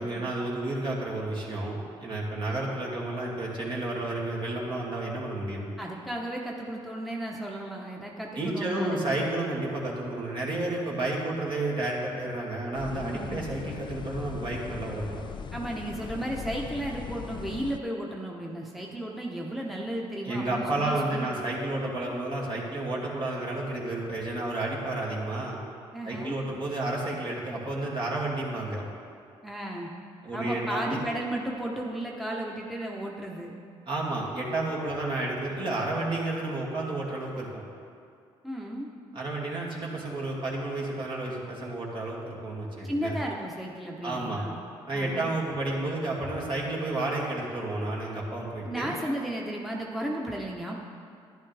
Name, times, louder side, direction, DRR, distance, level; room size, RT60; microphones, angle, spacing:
voice 1, 0.0-5.7 8.3-15.2 20.2-25.6 26.0-28.8 30.2-31.0 33.9-37.6 39.1-43.2 44.0-44.4 44.9-48.9, right 2 dB, 50° right, -3 dB, 2.4 m, -31 dB
voice 2, 5.8-9.2 13.0-13.4 15.5-21.3 25.9-26.4 29.4-29.9 30.3-33.5 38.4-38.9 42.8-44.6 44.9-45.3 48.6-50.8, right 1 dB, ahead, -2 dB, 1.1 m, -34 dB
sound 1, 12.7-17.8, left 7 dB, 50° left, 0.4 m, -39 dB
11.0 x 10.5 x 3.5 m, 2.4 s
cardioid pair, 75°, 10 cm